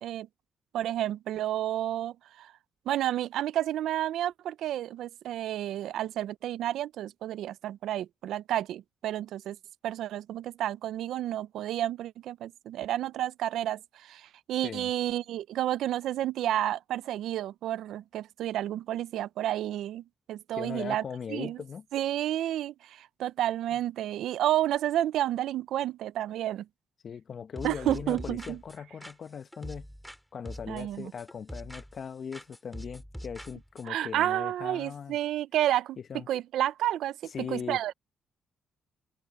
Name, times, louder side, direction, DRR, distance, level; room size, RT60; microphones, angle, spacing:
voice 1, 0.7-2.5 2.9-9.6 9.8-21.0 21.3-21.6 21.9-26.7 27.6-28.6 30.7-31.1 33.9-37.9, right 12 dB, 80° right, 0.5 m, -31 dB
voice 2, 20.6-21.8 23.7-23.8 27.0-29.9 30.3-35.2 36.1-36.3 37.3-37.8, left 7 dB, 50° left, 1.1 m, -39 dB
sound 1, 27.6-30.2 30.5-32.1 32.3-33.9, equal, ahead, 3.2 m, -44 dB
cardioid pair, 90°, 0 cm